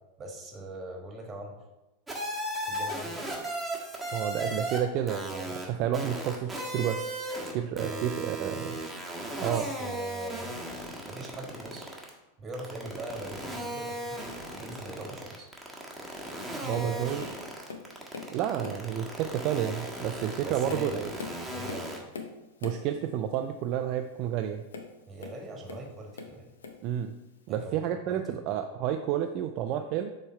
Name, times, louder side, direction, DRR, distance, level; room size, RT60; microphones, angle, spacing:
voice 1, 0.2-1.6 2.6-3.2 7.9-8.1 8.4-8.6 9.5-10.6 11.1-12.0 12.4-14.2 14.5-15.5 16.6-17.3 20.4-21.1 21.5-21.9 25.1-26.5 27.5-28.4, right 2 dB, 25° right, 2 dB, 1.4 m, -41 dB
sound 1, 2.1-4.8 5.1-5.6 5.9-7.5 7.8-12.1 12.5-22.0, right 1 dB, 5° right, 1.3 m, -36 dB
voice 2, 4.1-7.1 7.5-8.7 9.4-9.7 16.6-17.2 18.3-21.1 22.6-24.6 26.8-27.2 27.5-30.1, right 10 dB, 50° right, 6 dB, 0.4 m, -30 dB
Tap, 16.7-16.9 17.2-18.3 18.6-19.0 19.6-19.8 20.3-22.9 24.7-25.9 26.1-26.9 27.6-27.7, left 4 dB, 80° left, 0.7 m, -42 dB
7.0 x 3.2 x 4.4 m, 1.0 s
hypercardioid pair, 95°, 0 cm